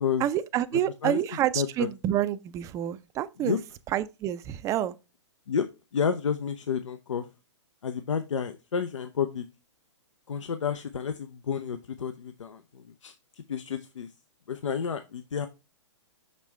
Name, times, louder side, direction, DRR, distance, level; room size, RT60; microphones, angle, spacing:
voice 1, 0.2-3.6 3.9-4.9, right 11 dB, 20° right, 0.4 m, -28 dB
voice 2, 0.7-1.2 1.5-1.9 3.4-3.6 5.5-5.7 5.9-7.2 7.8-9.4 10.3-12.6 13.0-13.1 13.5-14.1 14.5-15.5, left 7 dB, 80° left, 0.6 m, -30 dB
6.3 x 5.3 x 3.2 m
hypercardioid pair, 125°, 16 cm